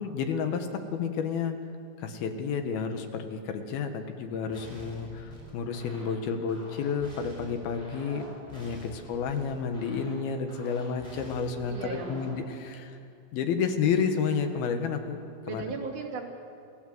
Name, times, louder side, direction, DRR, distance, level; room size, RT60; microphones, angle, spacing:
voice 1, 0.0-1.6 2.0-8.3 8.5-13.0 13.3-15.2 15.5-15.6, left 6 dB, 90° left, 6 dB, 3.4 m, -31 dB
sound 1, 4.5-12.4, equal, 10° left, 6.3 m, -47 dB
voice 2, 11.7-12.2 15.5-16.2, right 4 dB, 55° right, -2 dB, 4.0 m, -36 dB
27.0 x 16.5 x 7.8 m, 2.5 s
omnidirectional pair, 4.2 m